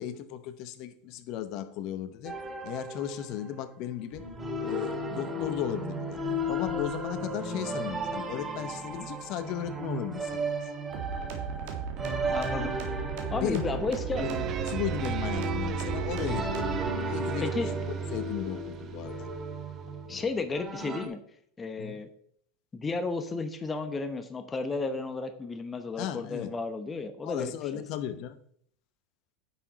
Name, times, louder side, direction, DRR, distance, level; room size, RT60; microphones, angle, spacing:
voice 1, 0.0-2.4 2.6-4.3 4.6-6.2 6.5-10.7 13.3-13.8 14.2-16.7 17.1-19.3 20.1-20.2 21.8-22.0 26.0-26.5 27.2-28.4, left 10 dB, 55° left, 1.0 m, -36 dB
sound 1, 2.2-3.8 4.1-21.1, right 1 dB, 20° right, 2.0 m, -35 dB
sound 2, 10.9-16.9, right 6 dB, 65° right, 2.0 m, -36 dB
voice 2, 12.3-12.8 13.3-14.3 17.4-17.7 20.1-21.2 21.6-22.1 22.7-27.8, left 3 dB, 20° left, 1.0 m, -33 dB
sound 3, 14.1-20.4, right 8 dB, 40° right, 0.6 m, -36 dB
9.7 x 6.1 x 4.2 m
hypercardioid pair, 95°, 0 cm